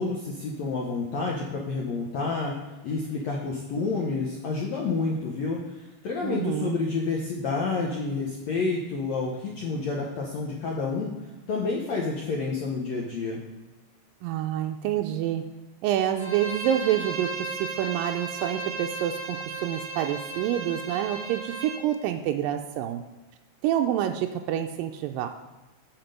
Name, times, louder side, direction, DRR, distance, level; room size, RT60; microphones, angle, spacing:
voice 1, 0.0-2.5 2.8-11.1 11.5-13.4, left 4 dB, 80° left, -2 dB, 1.5 m, -29 dB
voice 2, 6.2-6.8 14.2-15.4 15.8-23.0 23.6-25.3, right 11 dB, 85° right, 5 dB, 1.9 m, -27 dB
Bowed string instrument, 16.2-21.8, right 3 dB, 40° right, 0.4 m, -35 dB
8.9 x 6.0 x 5.2 m, 1.2 s
omnidirectional pair, 4.5 m